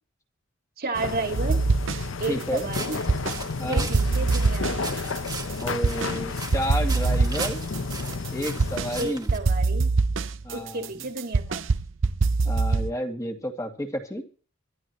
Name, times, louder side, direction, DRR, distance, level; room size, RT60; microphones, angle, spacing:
voice 1, 0.8-1.6 2.2-3.0 3.7-4.9 9.0-9.9 10.5-11.7, right 3 dB, 50° right, 4 dB, 2.3 m, -32 dB
sound 1, 0.9-9.1, left 4 dB, 80° left, 0.8 m, -32 dB
sound 2, 1.3-2.2 2.6-3.4 3.8-6.2 6.5-8.9 9.3-12.9, right 3 dB, 70° right, 0.7 m, -24 dB
voice 2, 2.3-2.7 3.6-3.9 5.6-7.6 8.3-9.3 10.4-10.9 12.4-14.2, equal, 15° left, 3 dB, 2.4 m, -31 dB
sound 3, 2.7-9.4, right 4 dB, 20° right, 2.0 m, -38 dB
25.5 x 11.5 x 3.1 m, 0.39 s
head